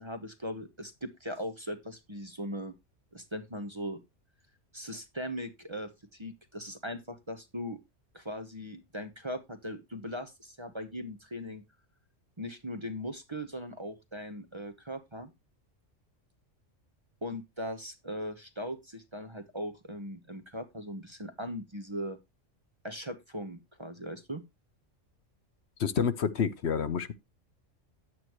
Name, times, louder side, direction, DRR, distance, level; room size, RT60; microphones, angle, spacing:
voice 1, 0.0-2.7 3.1-4.0 4.7-7.8 8.1-11.6 12.4-15.3 17.2-22.2 22.8-24.4, equal, 25° right, 1.0 m, -39 dB
voice 2, 25.8-27.1, left 7 dB, 60° left, 1.0 m, -28 dB
10.5 x 8.8 x 3.1 m
omnidirectional pair, 1.3 m